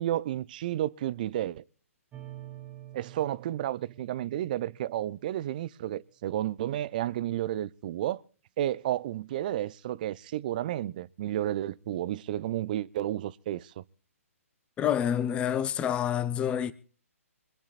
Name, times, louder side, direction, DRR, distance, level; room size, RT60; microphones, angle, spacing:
voice 1, 0.0-1.6 2.9-8.2 8.6-13.8, right 13 dB, 35° right, 0.6 m, -32 dB
sound 1, 2.1-5.6, right 13 dB, 15° right, 1.3 m, -48 dB
voice 2, 14.8-16.7, left 9 dB, 15° left, 0.9 m, -27 dB
25.0 x 9.7 x 4.1 m
figure-of-eight pair, 135°, 8 cm